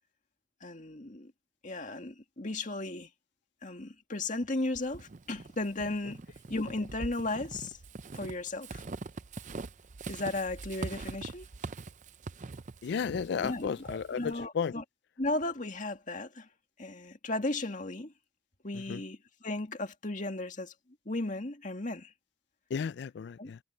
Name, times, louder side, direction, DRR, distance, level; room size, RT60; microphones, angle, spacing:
voice 1, 0.6-1.3 1.6-3.1 3.6-6.2 6.5-7.8 8.1-8.8 10.1-11.5 13.4-14.8 15.2-16.5 16.8-18.1 18.6-20.7 21.1-22.1 23.4-23.5, left 2 dB, 40° left, 2.1 m, -35 dB
Walk footsteps / Squeak, 4.7-14.3, right 3 dB, 40° right, 0.5 m, -43 dB
voice 2, 12.8-14.7 18.7-19.0 22.7-23.6, left 6 dB, 60° left, 0.3 m, -33 dB
head